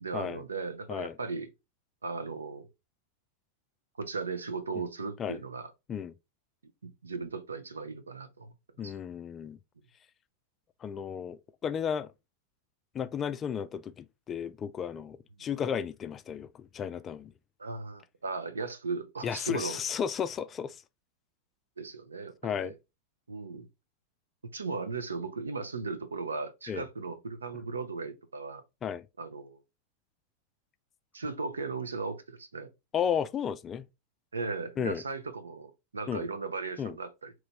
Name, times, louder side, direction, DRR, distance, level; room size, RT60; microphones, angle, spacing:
voice 1, 0.0-1.5 2.0-2.7 4.0-5.7 6.8-8.5 8.8-8.9 15.4-15.5 17.6-19.8 21.8-22.7 23.3-23.7 24.5-28.6 29.2-29.6 31.1-32.7 34.3-37.3, right 4 dB, 75° right, 0.6 m, -37 dB
voice 2, 8.8-9.6 10.8-12.1 12.9-17.3 19.2-20.8 22.4-22.7 26.7-26.9 28.8-29.1 32.9-33.9 34.8-35.0 36.1-36.3 36.8-37.0, left 8 dB, 25° left, 0.3 m, -33 dB
3.9 x 3.1 x 3.4 m
figure-of-eight pair, 90°, 0 cm